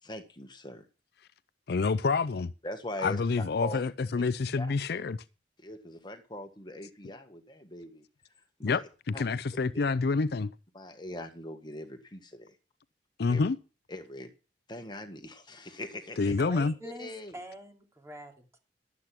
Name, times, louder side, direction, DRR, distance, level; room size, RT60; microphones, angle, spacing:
voice 1, 0.0-0.8 2.6-3.2 3.6-3.8 4.5-4.8 5.6-8.0 8.6-8.8 9.1-9.2 10.7-12.5 13.3-13.4 13.9-14.3 14.7-16.3 16.8-17.3, left 1 dB, 25° left, 1.5 m, -41 dB
voice 2, 1.7-2.5 3.0-5.2 8.6-10.5 13.2-13.6 16.2-16.7, left 4 dB, 65° left, 0.5 m, -28 dB
voice 3, 16.2-18.6, right 1 dB, 15° right, 3.0 m, -45 dB
12.0 x 8.4 x 6.0 m
head